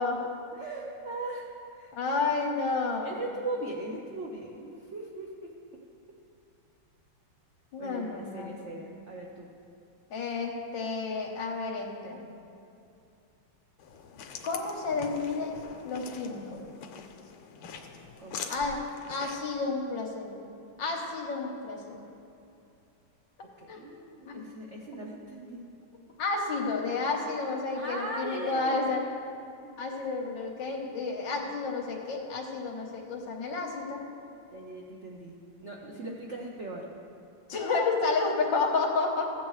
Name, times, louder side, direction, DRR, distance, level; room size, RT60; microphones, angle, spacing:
voice 1, 0.0-1.9 3.0-5.5 7.8-9.5 18.2-18.4 23.6-25.7 27.7-29.0 29.6-30.1 34.5-35.3 35.6-36.9, right 2 dB, 85° right, -1 dB, 0.6 m, -39 dB
voice 2, 1.9-3.1 7.7-8.5 10.1-12.2 14.4-16.6 18.5-18.8 19.1-20.3 20.8-22.0 23.7-23.8 24.3-24.4 26.2-29.0 29.8-34.0 37.5-39.3, left 4 dB, 60° left, 0 dB, 1.6 m, -31 dB
sound 1, 13.8-19.5, left 6 dB, 85° left, 1.6 m, -44 dB
15.0 x 8.2 x 3.2 m, 2.6 s
omnidirectional pair, 2.4 m